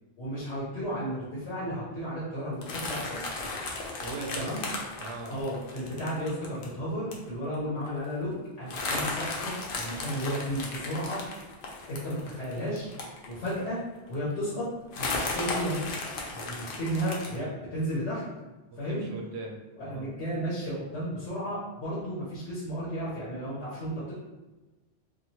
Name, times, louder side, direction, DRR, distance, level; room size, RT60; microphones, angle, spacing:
voice 1, 0.2-3.3 4.3-4.6 5.3-11.2 11.9-12.9 13.2-13.8 14.1-14.7 15.0-15.9 16.3-18.2 18.8-19.0 19.8-24.1, equal, 80° left, -9 dB, 1.1 m, -33 dB
sound 1, 2.6-6.7 7.1-7.3 7.5-7.6 7.9-8.1 8.7-13.7 14.1-14.2 14.9-17.4, left 3 dB, 65° left, 0.7 m, -35 dB
voice 2, 4.0-4.5 5.0-5.4 18.7-20.1, right 3 dB, 85° right, 2 dB, 0.9 m, -39 dB
3.0 x 2.5 x 2.7 m, 1.1 s
omnidirectional pair, 1.1 m